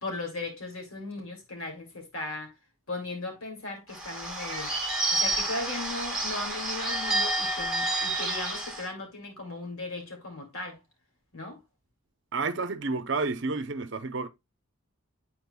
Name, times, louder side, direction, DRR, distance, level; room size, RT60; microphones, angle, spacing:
voice 1, 0.0-2.5 2.9-4.7 5.1-10.8 11.3-11.6, left 2 dB, 85° left, 2.3 m, -37 dB
Bird / Bell, 3.9-8.9, right 1 dB, 5° right, 1.4 m, -29 dB
voice 2, 12.3-14.3, right 3 dB, 55° right, 0.7 m, -30 dB
9.7 x 4.4 x 2.2 m
head